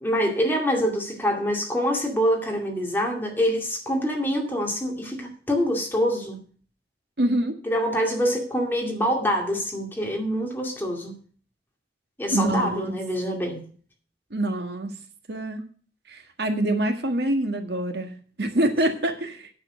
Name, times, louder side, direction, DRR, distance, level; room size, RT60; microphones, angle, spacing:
voice 1, 0.0-6.4 7.7-11.2 12.2-13.6, equal, 10° left, 1 dB, 2.3 m, -25 dB
voice 2, 7.2-7.6 12.3-12.9 14.3-14.9 15.3-15.6 16.1-19.5, right 1 dB, 70° right, 6 dB, 1.7 m, -25 dB
9.8 x 7.2 x 6.3 m, 0.43 s
head